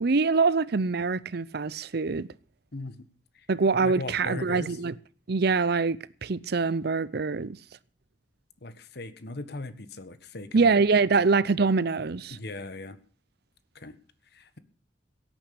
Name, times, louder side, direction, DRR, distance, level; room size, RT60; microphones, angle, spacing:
voice 1, 0.0-2.3 3.5-4.9 5.3-7.6 10.5-12.4, right 4 dB, 60° right, 0.6 m, -24 dB
voice 2, 2.7-3.1 3.3-3.5 3.8-4.8 8.6-10.8 12.3-13.0 13.7-14.0 14.3-14.6, left 2 dB, 60° left, 1.4 m, -39 dB
17.0 x 9.1 x 6.8 m
head